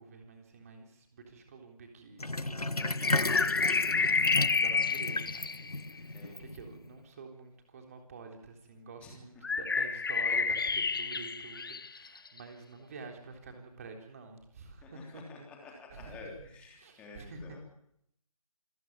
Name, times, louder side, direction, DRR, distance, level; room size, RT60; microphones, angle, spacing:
voice 1, 0.0-5.6 5.8-15.2 15.6-16.2 16.8-17.6, right 4 dB, 25° right, 3 dB, 3.7 m, -48 dB
Sink (filling or washing), 2.2-6.9, left 2 dB, 90° left, 0.9 m, -34 dB
sound 1, 2.8-6.0 9.4-12.4, left 5 dB, 35° left, 1.0 m, -29 dB
voice 2, 14.8-17.6, left 3 dB, 5° left, 0 dB, 3.2 m, -50 dB
27.0 x 15.0 x 9.5 m, 0.75 s
figure-of-eight pair, 155°, 19 cm